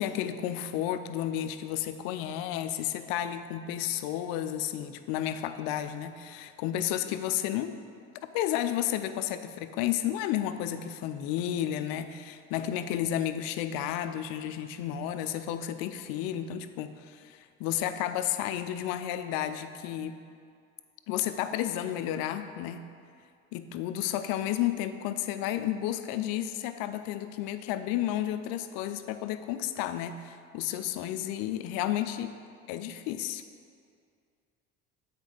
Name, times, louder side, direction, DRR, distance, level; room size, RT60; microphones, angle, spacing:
voice 1, 0.0-7.7 8.3-20.2 21.1-22.8 23.5-32.3 32.7-33.4, left 11 dB, 85° left, 10 dB, 0.5 m, -32 dB
8.1 x 4.4 x 5.0 m, 2.3 s
supercardioid pair, 70°, 35 cm